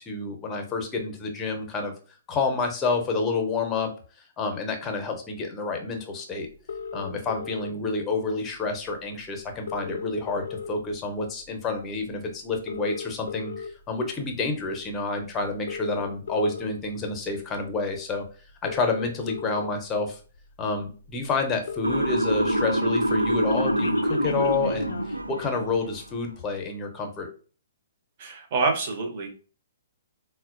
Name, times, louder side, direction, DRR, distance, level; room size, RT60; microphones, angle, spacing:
voice 1, 0.0-1.9 2.3-3.9 4.4-6.5 6.9-18.2 18.6-20.2 20.6-27.3, left 3 dB, 15° left, 4 dB, 0.7 m, -29 dB
sound 1, 6.7-7.7 8.9-9.0 9.2-9.3 9.5-11.0 11.4-11.7 12.5-13.7 14.4-14.6 15.5-16.7 17.9-18.0 18.5-19.7 20.4-20.5 20.8-20.9 21.1-21.2 21.4-22.7 23.0-25.2, left 5 dB, 60° left, 0.3 m, -36 dB
Motor vehicle (road) / Siren, 21.8-26.0, right 1 dB, 90° right, 0.3 m, -26 dB
voice 2, 28.2-29.3, right 4 dB, 40° right, 3 dB, 0.8 m, -26 dB
4.0 x 2.2 x 2.5 m, 0.38 s
figure-of-eight pair, 120°, 0 cm